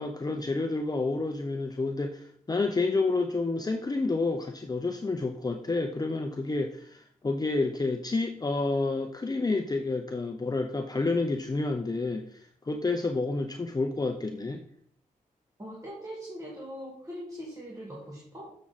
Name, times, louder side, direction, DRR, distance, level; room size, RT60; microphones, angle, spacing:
voice 1, 0.0-14.6, left 3 dB, 25° left, 4 dB, 0.7 m, -29 dB
voice 2, 15.6-18.5, equal, 25° right, -4 dB, 2.0 m, -41 dB
7.3 x 6.2 x 4.1 m, 0.63 s
cardioid pair, 80°, 15 cm